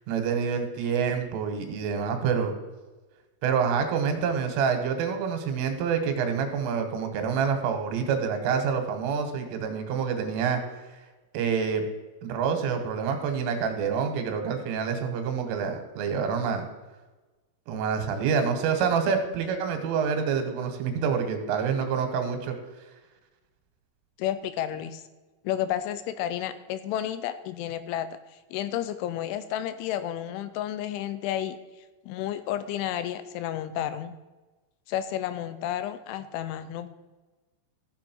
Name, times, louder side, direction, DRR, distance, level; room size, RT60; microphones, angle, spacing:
voice 1, 0.1-2.5 3.4-10.6 11.3-11.9 12.2-16.7 17.7-22.6, right 6 dB, 85° right, 6 dB, 4.0 m, -27 dB
voice 2, 24.2-25.0 25.4-28.1 28.5-31.6 32.1-34.1 34.9-36.9, left 11 dB, 85° left, 12 dB, 3.0 m, -31 dB
14.0 x 7.4 x 4.5 m, 1.2 s
omnidirectional pair, 5.7 m